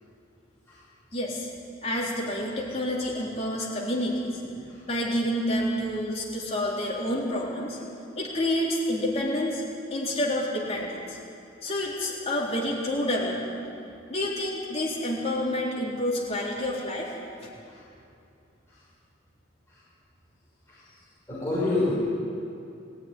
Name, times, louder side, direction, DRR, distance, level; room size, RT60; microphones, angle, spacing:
voice 1, 1.1-1.5 1.8-4.6 4.9-7.8 8.2-9.6 9.9-11.2 11.6-13.6 14.1-17.1 17.4-17.5, left 1 dB, 30° left, -4 dB, 3.9 m, -28 dB
voice 2, 21.3-21.9, left 2 dB, 15° left, -9 dB, 6.1 m, -26 dB
20.5 x 14.5 x 9.9 m, 2.6 s
head